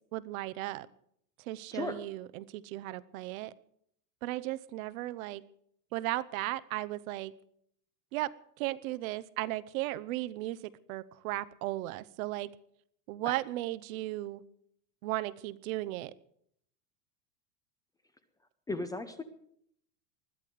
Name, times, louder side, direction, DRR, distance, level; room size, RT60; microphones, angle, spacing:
voice 1, 0.1-0.9 1.4-3.5 4.2-5.4 5.9-7.3 8.1-12.5 13.1-14.4 15.0-16.1, right 17 dB, 60° right, 0.8 m, -36 dB
voice 2, 18.7-19.2, left 2 dB, 10° left, 0.6 m, -35 dB
20.5 x 13.0 x 5.0 m
supercardioid pair, 140°, 49 cm